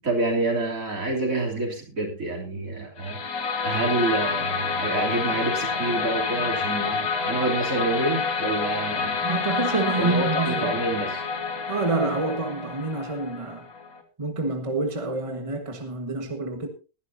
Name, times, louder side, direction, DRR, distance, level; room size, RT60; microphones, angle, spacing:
voice 1, 0.0-3.2 3.6-9.2 10.0-11.2, right 2 dB, 60° right, 3.7 m, -27 dB
sound 1, 3.0-14.0, left 5 dB, 75° left, 2.2 m, -28 dB
voice 2, 9.2-10.8 11.7-13.7 14.2-16.7, right 3 dB, 20° right, 1.5 m, -27 dB
20.0 x 11.5 x 2.7 m
omnidirectional pair, 1.6 m